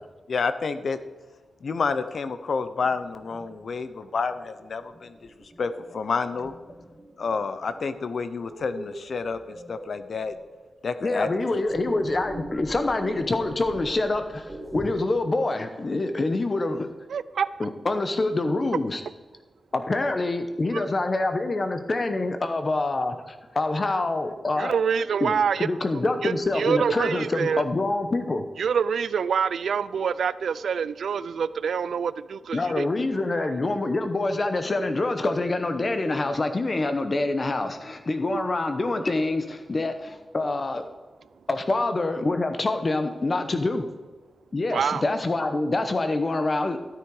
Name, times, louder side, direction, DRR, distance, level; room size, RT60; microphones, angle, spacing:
voice 1, 0.3-1.0 1.6-5.3 5.6-6.5 7.2-10.4 10.8-11.3 11.5-11.6, left 4 dB, 50° left, 11 dB, 0.7 m, -29 dB
sound 1, 1.8-14.9, right 1 dB, 15° right, 2.0 m, -43 dB
voice 2, 11.0-16.9 17.6-19.0 19.7-24.7 25.2-25.3 25.6-28.4 32.5-40.8 41.5-43.9 44.5-46.8, left 2 dB, 30° left, 8 dB, 0.9 m, -26 dB
voice 3, 17.1-17.5 20.7-20.8 24.6-25.7 26.2-27.6 28.6-32.9 33.3-33.5 38.3-38.5 44.7-45.0, right 6 dB, 75° right, 16 dB, 0.4 m, -26 dB
13.5 x 9.0 x 4.9 m, 1.3 s
wide cardioid pair, 175°, 0 cm